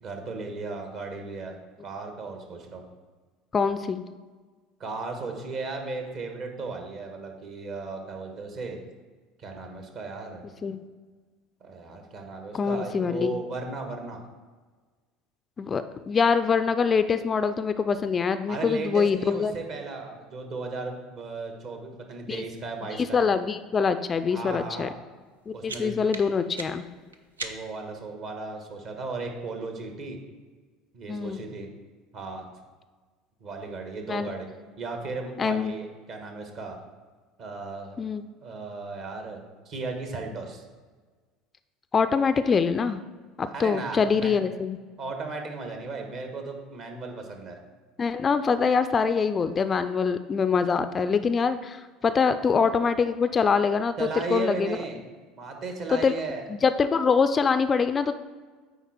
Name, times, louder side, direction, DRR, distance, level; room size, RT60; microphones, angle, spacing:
voice 1, 0.0-1.6 1.8-2.9 4.8-8.8 9.4-10.4 11.6-14.2 18.5-23.3 24.3-24.9 25.5-25.9 27.4-30.2 30.9-31.7 32.1-32.5 33.4-34.5 34.8-36.8 37.4-38.0 38.4-39.4 39.6-40.6 43.5-44.3 45.0-47.6 54.0-55.0 55.3-56.5, right 3 dB, 50° right, 4 dB, 1.3 m, -35 dB
voice 2, 3.5-4.0 10.6-10.8 12.5-13.3 15.6-19.6 22.3-22.4 23.0-24.9 25.5-26.8 31.1-31.4 34.1-34.3 35.4-35.7 38.0-38.2 41.9-43.0 43.4-44.8 48.0-54.8 55.9-56.1 56.5-58.1, left 5 dB, 30° left, 11 dB, 0.4 m, -24 dB
sound 1, 25.2-27.9, right 3 dB, 85° right, 0.5 m, -41 dB
9.0 x 3.9 x 4.7 m, 1.4 s
figure-of-eight pair, 65°, 0 cm